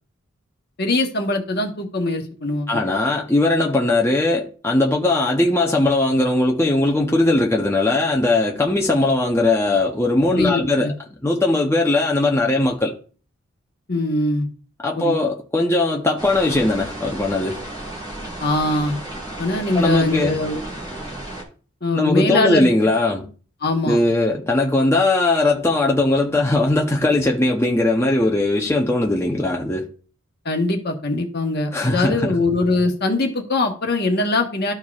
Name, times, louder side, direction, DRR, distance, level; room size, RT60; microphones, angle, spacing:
voice 1, 0.8-2.8 10.3-10.9 13.9-14.5 15.0-15.1 18.4-19.0 19.4-20.6 21.8-22.7 23.6-24.0 30.4-34.7, left 2 dB, 50° left, 1.3 m, -22 dB
voice 2, 2.7-10.9 11.2-12.9 14.8-17.6 19.7-20.3 21.9-23.3 23.8-29.9 31.7-32.4, left 2 dB, 10° left, 0.7 m, -19 dB
sound 1, 16.2-21.4, right 1 dB, 20° right, 2.1 m, -33 dB
13.5 x 4.5 x 2.4 m
head